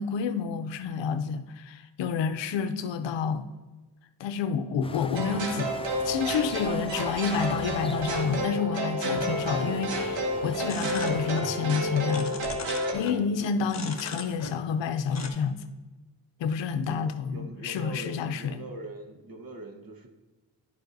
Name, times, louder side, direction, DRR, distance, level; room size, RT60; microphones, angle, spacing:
voice 1, 0.0-3.5 4.2-5.7 6.0-12.3 12.9-15.6 16.4-18.6, left 6 dB, 85° left, 0.6 m, -29 dB
sound 1, 4.8-8.5 9.2-11.4, left 3 dB, 15° left, 0.4 m, -41 dB
sound 2, 5.1-12.9, equal, 85° right, 1.5 m, -30 dB
sound 3, 10.6-11.6 11.8-13.2 13.7-14.8 15.1-15.3, left 4 dB, 40° left, 1.1 m, -39 dB
voice 2, 16.9-20.1, right 2 dB, 50° right, 1.3 m, -42 dB
13.0 x 4.9 x 2.6 m
cardioid pair, 70°, 43 cm